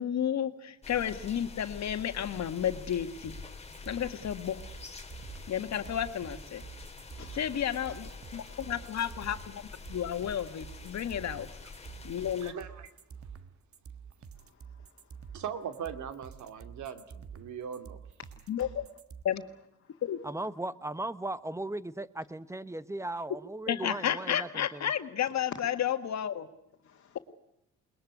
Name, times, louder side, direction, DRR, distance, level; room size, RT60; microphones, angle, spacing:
voice 1, 0.0-3.3 3.8-4.6 5.5-6.6 7.3-9.6 9.9-11.5 12.0-12.5 18.5-18.7 19.2-19.4 20.0-20.2 23.7-26.5, left 9 dB, 60° left, 1.9 m, -32 dB
sound 1, 0.8-12.5, left 4 dB, 20° left, 3.2 m, -47 dB
sound 2, 3.2-19.2, right 6 dB, 50° right, 1.5 m, -48 dB
voice 2, 7.2-7.8 8.3-9.1 14.4-15.4 18.5-18.7 19.8-20.0 26.8-27.2, left 7 dB, 45° left, 2.4 m, -58 dB
voice 3, 12.4-12.9 15.3-18.0, right 8 dB, 70° right, 2.6 m, -40 dB
voice 4, 20.2-24.9, right 2 dB, 10° right, 1.1 m, -37 dB
21.5 x 21.0 x 9.5 m
cardioid pair, 90°, 30 cm